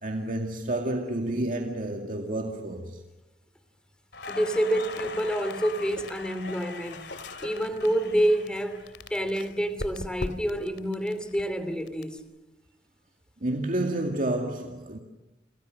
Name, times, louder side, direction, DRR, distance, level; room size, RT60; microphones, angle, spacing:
voice 1, 0.0-3.0 13.4-15.0, right 1 dB, 50° right, 2.2 m, -30 dB
Crackle, 4.1-10.0 10.3-12.0, left 4 dB, 70° left, 3.1 m, -42 dB
voice 2, 4.3-7.1 7.4-12.2, right 1 dB, 5° left, 3.0 m, -28 dB
sound 1, 4.6-10.7, left 1 dB, 90° left, 2.1 m, -42 dB
28.5 x 27.5 x 6.5 m
head